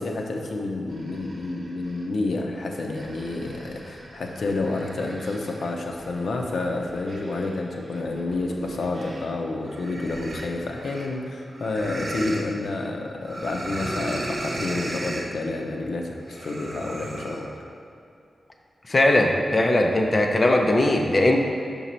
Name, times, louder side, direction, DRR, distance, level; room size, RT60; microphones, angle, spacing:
voice 1, 0.0-17.6, left 2 dB, 65° left, 2 dB, 0.6 m, -29 dB
sound 1, 0.9-2.0 2.6-9.4 9.7-12.4 13.2-15.3 16.2-17.5, right 1 dB, 50° right, 0.7 m, -37 dB
voice 2, 18.9-21.4, left 1 dB, 30° left, 2 dB, 0.5 m, -19 dB
6.0 x 5.4 x 4.3 m, 2.5 s
wide cardioid pair, 175°, 0 cm